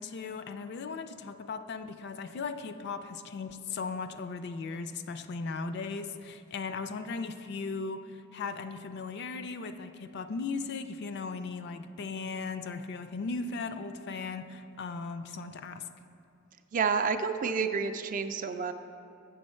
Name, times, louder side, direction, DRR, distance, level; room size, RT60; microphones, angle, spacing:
voice 1, 0.0-15.8, left 4 dB, 55° left, 9 dB, 0.4 m, -37 dB
voice 2, 16.7-18.7, right 5 dB, 40° right, 9 dB, 0.3 m, -29 dB
8.1 x 6.3 x 4.3 m, 2.5 s
head